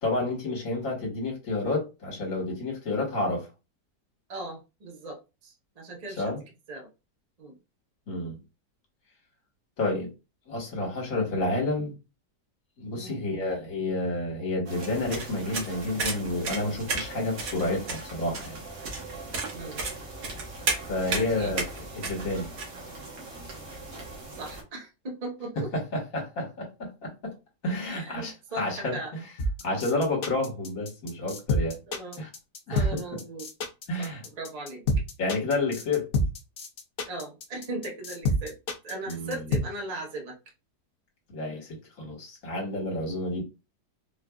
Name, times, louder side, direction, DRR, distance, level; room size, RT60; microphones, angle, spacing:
voice 1, 0.0-3.5 6.2-6.4 8.1-8.4 9.8-10.1 10.5-11.9 12.8-18.6 20.9-21.7 22.0-22.5 25.7-27.3 27.6-29.2 29.6-31.8 32.2-32.3 32.7-33.0 33.9-34.2 35.2-36.1 39.1-39.5 41.3-43.4, left 2 dB, 50° left, 1.8 m, -30 dB
voice 2, 4.3-6.2 6.7-6.9 7.4-7.6 12.9-13.2 19.5-19.8 21.1-21.5 24.3-25.5 27.9-29.1 31.9-32.2 32.7-33.5 34.0-34.8 37.1-38.5 38.8-40.3, right 2 dB, 30° right, 0.9 m, -38 dB
sound 1, 14.7-24.6, right 3 dB, 80° right, 1.8 m, -42 dB
sound 2, 14.8-22.7, right 3 dB, 60° right, 1.3 m, -33 dB
sound 3, 29.4-39.6, left 1 dB, 85° left, 0.5 m, -27 dB
4.5 x 2.5 x 2.4 m
omnidirectional pair, 1.8 m